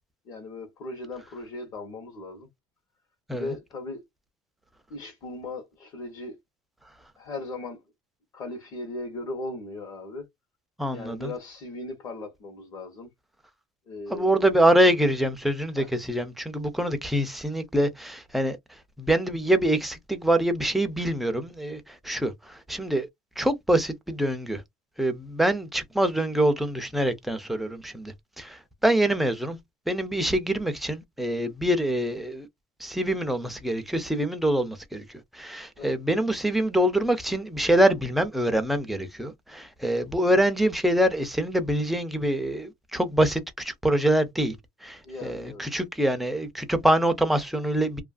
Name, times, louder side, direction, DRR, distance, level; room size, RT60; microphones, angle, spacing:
voice 1, 0.3-2.5 3.3-4.0 4.9-6.4 7.2-7.8 8.3-10.3 10.9-13.1 13.9-14.6 15.8-15.9 35.8-36.0 45.0-45.6, left 2 dB, 40° left, 0.8 m, -38 dB
voice 2, 10.8-11.3 14.1-18.6 19.0-23.1 23.4-24.6 25.0-29.6 29.9-32.5 32.8-44.6 44.8-48.0, right 1 dB, ahead, 0.4 m, -25 dB
2.7 x 2.4 x 2.3 m
cardioid pair, 180°, 10 cm